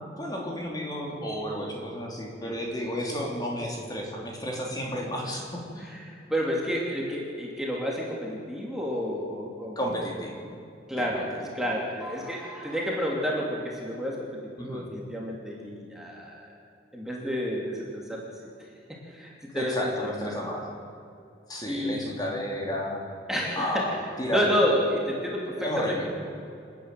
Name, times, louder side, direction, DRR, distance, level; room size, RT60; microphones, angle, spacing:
voice 1, 0.0-5.9 9.7-10.4 11.0-11.1 14.6-14.8 19.5-20.6 21.5-23.0 23.6-23.9 24.2-24.5 25.5-26.1, equal, 20° left, -1 dB, 3.2 m, -32 dB
voice 2, 5.8-9.8 10.9-11.3 11.5-16.5 16.9-18.2 18.9-20.4 21.7-22.0 23.3-24.0 24.3-26.2, equal, 5° right, -3 dB, 3.0 m, -30 dB
27.5 x 10.5 x 9.2 m, 2.5 s
head